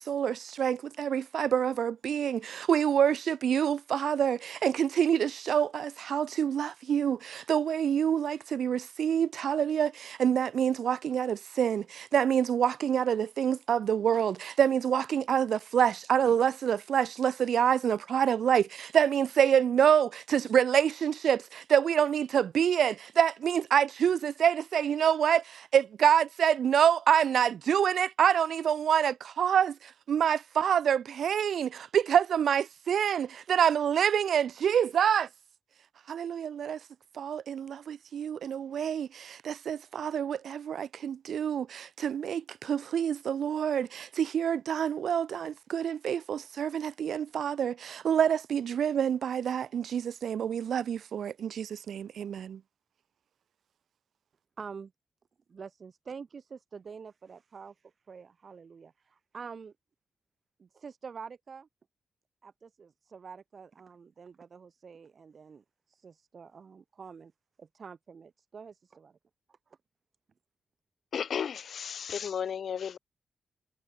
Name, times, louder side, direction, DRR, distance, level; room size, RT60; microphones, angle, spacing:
voice 1, 0.0-35.3 36.1-36.8 37.2-52.6, right 8 dB, 80° right, 0.5 m, -27 dB
voice 2, 54.6-54.9 55.5-59.7 60.6-61.7 62.4-67.3 67.6-69.1, right 5 dB, 50° right, 3.2 m, -47 dB
voice 3, 71.1-73.0, left 7 dB, 65° left, 1.1 m, -33 dB
wide cardioid pair, 130°, 0 cm